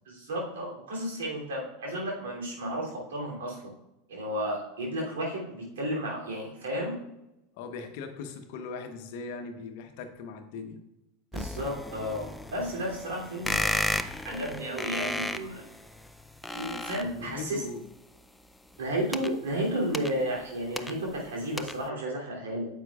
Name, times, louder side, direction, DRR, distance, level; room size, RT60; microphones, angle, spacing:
voice 1, 0.1-3.7 4.1-7.0 11.3-13.8 14.2-15.6 16.5-17.6 18.8-22.7, right 1 dB, 75° right, -3 dB, 2.9 m, -33 dB
voice 2, 7.6-10.8 17.0-17.8, left 5 dB, 60° left, 6 dB, 1.0 m, -39 dB
sound 1, 11.3-17.5 18.7-21.3 21.6-21.9, left 1 dB, 5° left, 0.5 m, -34 dB
9.3 x 7.3 x 2.4 m, 0.93 s
hypercardioid pair, 85°, 0 cm